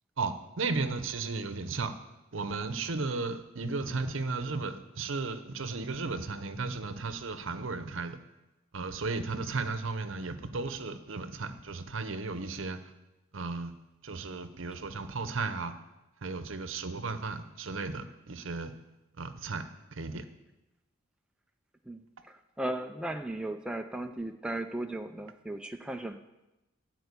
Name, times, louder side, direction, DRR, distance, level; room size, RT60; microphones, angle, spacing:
voice 1, 0.2-1.9 2.3-8.2 8.7-12.8 13.3-13.7 14.0-15.7 16.2-18.7 19.2-19.6 19.9-20.2, right 3 dB, 65° right, 10 dB, 0.8 m, -34 dB
voice 2, 21.8-26.2, right 1 dB, 5° right, 5 dB, 0.3 m, -36 dB
12.5 x 4.5 x 8.3 m, 0.99 s
head